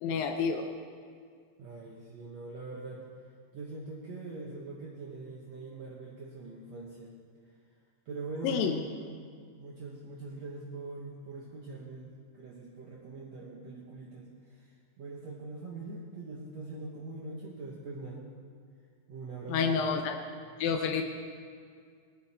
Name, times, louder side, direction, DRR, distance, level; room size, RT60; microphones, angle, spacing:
voice 1, 0.0-0.7 8.4-8.8 19.5-20.2 20.6-21.0, left 6 dB, 85° left, 5 dB, 2.5 m, -29 dB
voice 2, 1.6-3.0 3.5-7.1 8.1-8.9 9.5-18.2 19.1-19.9, right 3 dB, 60° right, -3 dB, 2.2 m, -42 dB
20.0 x 12.5 x 4.4 m, 2.1 s
omnidirectional pair, 4.0 m